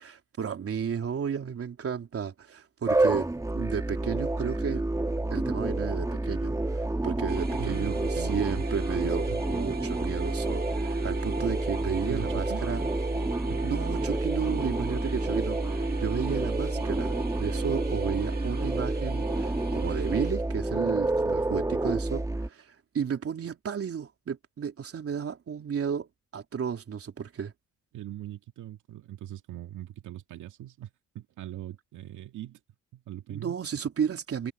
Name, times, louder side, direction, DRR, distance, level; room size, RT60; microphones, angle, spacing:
voice 1, 0.0-3.3 3.5-4.9 5.3-12.8 13.6-27.5 33.3-34.5, right 7 dB, 50° right, 3.4 m, -33 dB
sound 1, 2.9-22.5, right 2 dB, 10° right, 2.0 m, -29 dB
sound 2, 7.3-20.3, right 4 dB, 30° right, 2.2 m, -37 dB
voice 2, 7.6-8.6 9.0-9.4 12.0-12.9 13.5-13.7 27.9-32.6 32.9-33.6, right 13 dB, 80° right, 2.1 m, -41 dB
cardioid pair, 90°, 30 cm